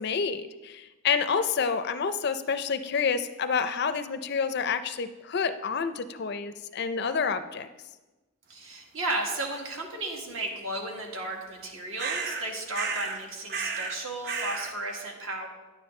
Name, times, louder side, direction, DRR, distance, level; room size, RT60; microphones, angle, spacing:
voice 1, 0.0-7.7, left 6 dB, 50° left, 11 dB, 0.4 m, -28 dB
voice 2, 8.5-15.5, right 2 dB, 65° right, 0 dB, 1.7 m, -34 dB
Hooded crow, 12.0-12.5 12.7-13.2 13.5-14.0 14.2-14.7, right 5 dB, 50° right, 0.7 m, -32 dB
10.0 x 8.8 x 3.2 m, 1.1 s
head